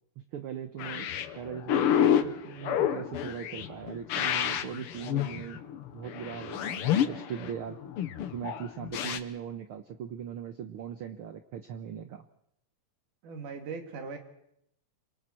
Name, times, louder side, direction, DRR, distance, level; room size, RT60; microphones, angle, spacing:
voice 1, 0.2-1.1 1.3-5.6 5.9-7.8 8.3-12.2, right 8 dB, 70° right, 8 dB, 1.3 m, -39 dB
sound 1, 0.8-9.2, left 9 dB, 65° left, 1.5 m, -29 dB
voice 2, 13.2-14.2, right 5 dB, 90° right, 5 dB, 3.7 m, -39 dB
27.0 x 24.5 x 4.4 m, 0.75 s
omnidirectional pair, 3.5 m